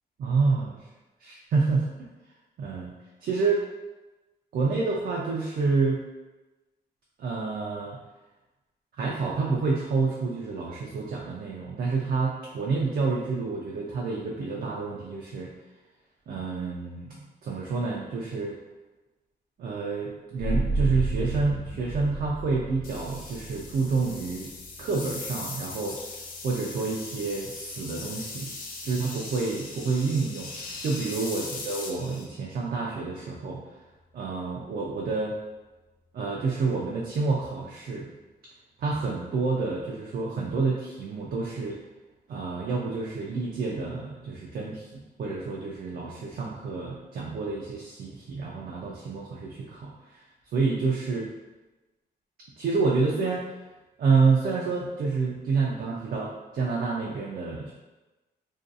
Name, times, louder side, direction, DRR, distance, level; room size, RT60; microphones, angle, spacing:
voice 1, 0.2-0.8 1.2-1.8 2.6-2.9 3.2-3.6 4.5-6.0 7.2-8.0 9.0-15.5 16.3-18.6 19.6-24.5 24.8-26.0 26.4-28.5 28.8-30.5 30.8-33.6 34.1-35.4 36.1-38.1 38.8-41.8 42.3-50.3 50.5-51.3 52.6-53.5 54.0-57.7, right 4 dB, 60° right, -3 dB, 0.4 m, -28 dB
sound 1, 20.4-31.6, right 2 dB, 75° right, 1.0 m, -35 dB
sound 2, 22.8-32.2, left 3 dB, 55° left, 0.4 m, -40 dB
2.5 x 2.3 x 2.5 m, 1.1 s
wide cardioid pair, 135°, 17 cm